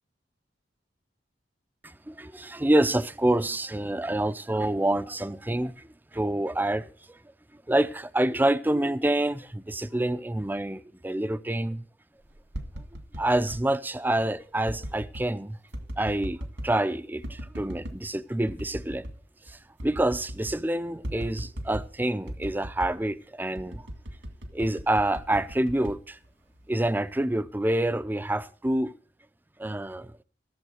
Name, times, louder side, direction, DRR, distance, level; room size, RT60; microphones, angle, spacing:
voice 1, 1.8-5.9 6.1-7.2 7.7-11.8 13.2-15.6 16.0-16.4 16.6-19.1 19.5-23.8 24.5-26.2 26.7-28.9 29.6-30.1, right 1 dB, 10° right, 0.5 m, -27 dB
sound 1, 12.3-13.6 14.6-15.3 15.7-16.8 17.2-18.0 18.5-19.2 19.5-19.6 19.8-20.6 21.0-21.9 22.3-23.0 23.5-26.7 27.1-27.5, equal, 80° right, 2.1 m, -38 dB
15.5 x 7.2 x 6.3 m
head